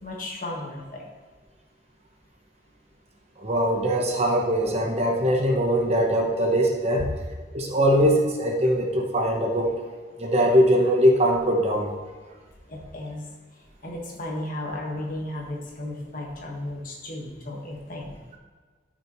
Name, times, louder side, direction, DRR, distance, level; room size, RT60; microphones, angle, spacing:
voice 1, 0.0-1.1 12.7-13.2 13.8-18.2, left 1 dB, 50° left, -1 dB, 1.6 m, -34 dB
voice 2, 3.4-7.1 7.5-9.7 10.2-11.9, equal, 35° right, 0 dB, 1.1 m, -21 dB
13.0 x 6.4 x 3.2 m, 1.4 s
head